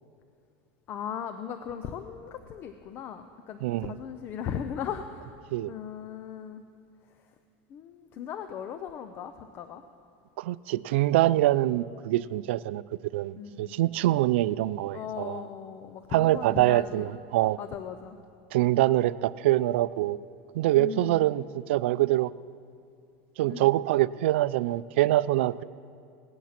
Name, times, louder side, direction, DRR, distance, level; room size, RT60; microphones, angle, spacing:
voice 1, 0.9-5.3 5.7-6.6 7.7-9.8 13.4-13.8 14.9-17.1 17.6-18.2 20.7-21.4 23.5-23.7, left 8 dB, 35° left, 9 dB, 0.6 m, -38 dB
voice 2, 3.6-3.9 5.5-5.7 10.4-12.8 13.1-15.4 16.1-17.6 18.5-20.2 20.5-22.3 23.4-25.6, right 15 dB, 85° right, 17 dB, 0.4 m, -25 dB
17.5 x 11.0 x 5.9 m, 2.4 s
supercardioid pair, 150°, 6 cm